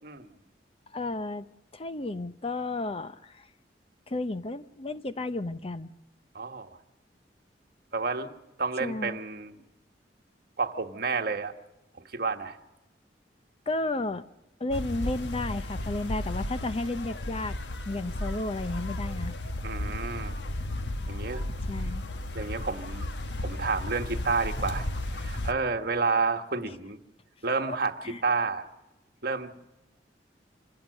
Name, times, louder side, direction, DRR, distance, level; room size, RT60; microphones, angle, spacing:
voice 1, 0.9-1.4 1.7-3.5 4.1-5.9 8.8-9.2 13.7-14.2 14.6-17.6 17.9-19.4 21.7-22.0 26.6-26.8 27.7-27.8 28.0-28.2, left 2 dB, 35° left, 12 dB, 0.7 m, -33 dB
voice 2, 6.3-6.8 7.9-9.6 10.6-11.5 12.1-12.6 19.6-20.4 21.1-21.4 22.3-23.0 23.4-24.9 25.2-27.0 27.4-28.0 28.2-28.7 29.2-29.6, right 4 dB, 60° right, 6 dB, 1.4 m, -30 dB
sound 1, 14.7-25.5, left 1 dB, 85° left, 1.2 m, -34 dB
26.5 x 17.5 x 6.6 m, 0.96 s
head